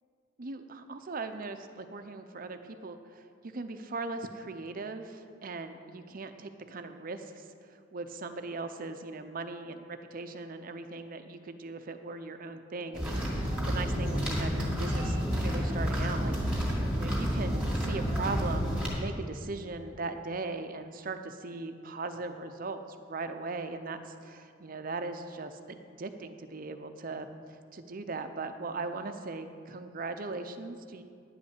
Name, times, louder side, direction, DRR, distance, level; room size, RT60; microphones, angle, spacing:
voice 1, 0.4-3.3 3.5-16.3 16.9-27.3 27.7-31.0, right 3 dB, 45° right, 8 dB, 0.6 m, -39 dB
sound 1, 12.9-18.9, equal, 5° right, 2.2 m, -30 dB
10.5 x 5.3 x 8.2 m, 2.3 s
head